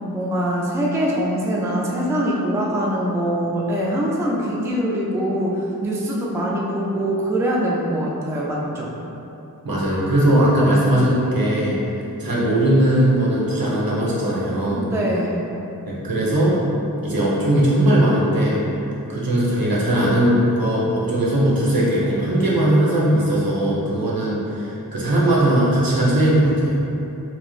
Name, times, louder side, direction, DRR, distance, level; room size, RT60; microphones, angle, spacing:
voice 1, 0.1-8.9 14.7-15.4, equal, 10° right, -4 dB, 0.4 m, -23 dB
voice 2, 9.6-11.8 12.2-14.9 15.9-16.6 17.0-18.6 19.1-26.8, right 1 dB, 70° right, -6 dB, 0.9 m, -19 dB
4.3 x 3.1 x 2.4 m, 3.0 s
wide cardioid pair, 85°, 37 cm